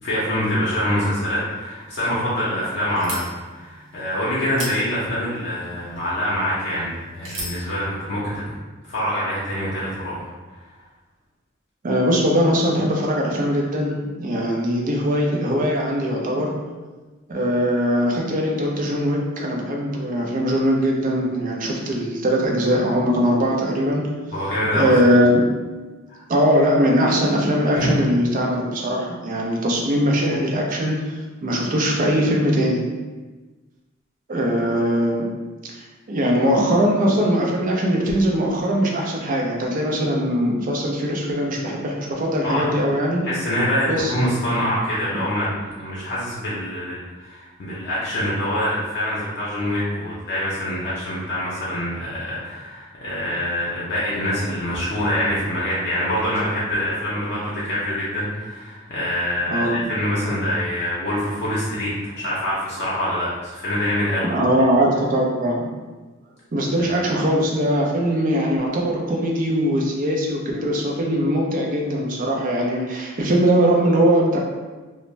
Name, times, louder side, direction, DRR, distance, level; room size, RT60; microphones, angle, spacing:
voice 1, 0.0-3.2 3.4-6.9 7.1-8.5 8.9-10.3 10.6-10.7 24.3-24.9 26.1-26.2 27.7-28.0 42.4-42.6 43.2-64.3 66.8-66.9, equal, 55° left, -7 dB, 0.6 m, -25 dB
sound 1, 1.8-7.7, right 1 dB, 80° right, 0.8 m, -38 dB
voice 2, 11.8-16.6 17.3-24.1 24.7-25.5 26.3-32.8 34.3-35.3 35.7-43.2 43.9-44.1 59.5-59.8 64.3-65.7 66.5-74.4, equal, 40° right, -1 dB, 0.5 m, -21 dB
2.5 x 2.0 x 3.1 m, 1.3 s
head